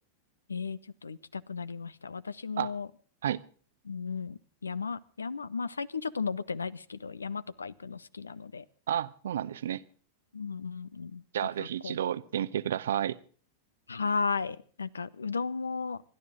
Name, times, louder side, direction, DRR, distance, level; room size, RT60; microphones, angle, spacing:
voice 1, 0.5-2.9 3.9-8.6 10.3-11.2 11.6-12.0 13.9-16.0, left 5 dB, 75° left, 21 dB, 0.7 m, -35 dB
voice 2, 8.9-9.8 11.3-13.2, right 10 dB, 60° right, 17 dB, 0.7 m, -31 dB
27.5 x 12.0 x 3.6 m, 0.43 s
figure-of-eight pair, 90°, 0 cm